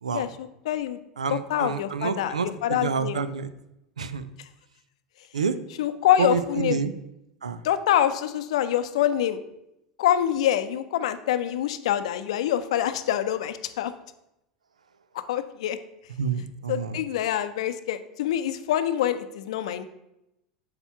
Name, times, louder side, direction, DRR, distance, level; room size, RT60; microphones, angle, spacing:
voice 1, 0.1-1.0 1.3-3.2 5.8-6.8 7.6-9.4 10.0-13.9 15.3-15.8 16.7-19.8, left 11 dB, 65° left, 11 dB, 0.6 m, -25 dB
voice 2, 1.2-3.5 4.0-4.3 5.3-5.6 6.2-6.9 7.4-7.6 16.2-17.0, right 5 dB, 80° right, 13 dB, 0.5 m, -28 dB
6.6 x 4.3 x 5.8 m, 0.86 s
figure-of-eight pair, 85°, 4 cm